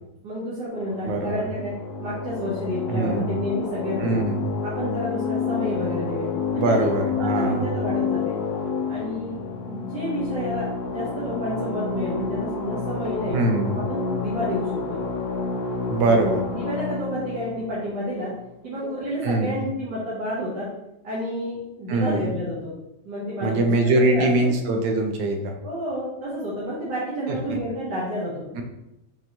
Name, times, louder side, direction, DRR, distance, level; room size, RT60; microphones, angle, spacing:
voice 1, 0.2-4.2 4.6-6.9 7.1-8.4 8.9-9.4 9.7-13.4 13.9-15.0 16.2-18.3 18.6-20.7 21.0-22.7 23.0-23.5 23.9-24.5 25.6-28.5, equal, 70° right, -8 dB, 1.7 m, -30 dB
sound 1, 0.7-18.9, left 4 dB, 70° left, 1.1 m, -29 dB
voice 2, 1.0-1.4 2.9-3.3 4.0-4.5 6.5-7.7 13.3-13.8 15.9-16.4 19.2-19.6 21.9-22.3 23.4-25.5 27.3-27.4 28.5-28.6, right 2 dB, 85° right, 3 dB, 1.4 m, -22 dB
5.3 x 3.0 x 2.8 m, 0.86 s
omnidirectional pair, 1.9 m